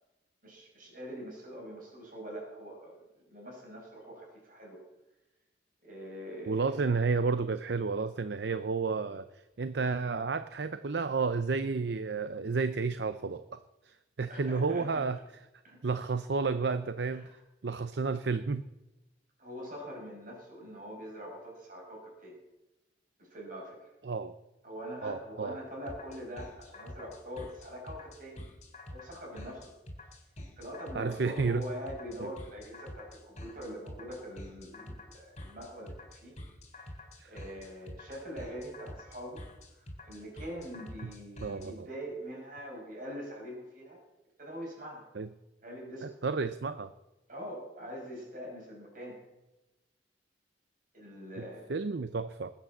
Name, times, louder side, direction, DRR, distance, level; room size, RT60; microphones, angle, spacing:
voice 1, 0.4-4.8 5.8-6.8 14.3-15.0 15.6-15.8 17.1-17.4 19.4-22.4 23.2-23.9 24.6-28.5 28.9-29.7 30.6-36.3 37.2-39.4 39.7-44.0 44.4-45.1 45.6-46.2 47.3-49.2 50.9-51.7, equal, 50° right, -1 dB, 6.8 m, -43 dB
voice 2, 6.5-9.3 9.6-13.4 13.8-15.2 15.8-17.3 17.6-18.7 24.0-24.3 25.0-25.6 30.9-31.6 32.2-32.3 37.2-37.3 41.4-41.9 45.1-45.3 46.0-46.9 51.4-51.5 51.7-52.5, right 4 dB, 65° right, 12 dB, 0.6 m, -31 dB
sound 1, 25.9-41.7, left 1 dB, 40° left, 3.4 m, -47 dB
20.5 x 8.7 x 7.3 m, 1.0 s
head